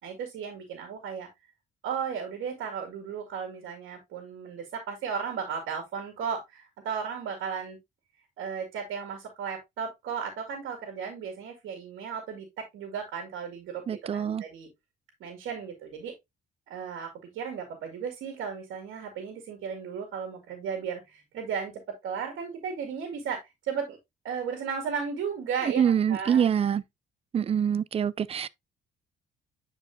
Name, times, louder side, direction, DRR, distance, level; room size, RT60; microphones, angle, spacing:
voice 1, 0.0-1.3 1.8-7.8 8.4-13.8 14.1-14.7 15.2-16.1 16.7-21.7 22.0-24.0 24.2-25.8 26.1-26.4, right 6 dB, 80° right, 2.1 m, -35 dB
voice 2, 13.9-14.4 25.8-26.8 27.3-28.5, right 8 dB, 30° right, 0.4 m, -25 dB
8.9 x 4.7 x 2.6 m
cardioid pair, 90°, 20 cm